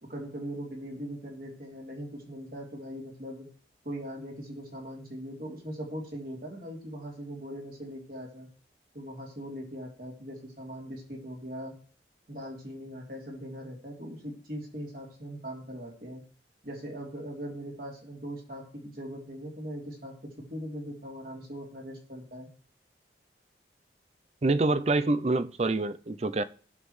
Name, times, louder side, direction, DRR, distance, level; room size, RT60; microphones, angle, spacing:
voice 1, 0.0-3.5 3.8-8.5 8.9-11.8 12.3-16.2 16.6-22.5, equal, 55° right, 3.2 m, -40 dB
voice 2, 24.4-26.4, right 2 dB, 35° right, 0.5 m, -26 dB
18.0 x 6.3 x 3.2 m
head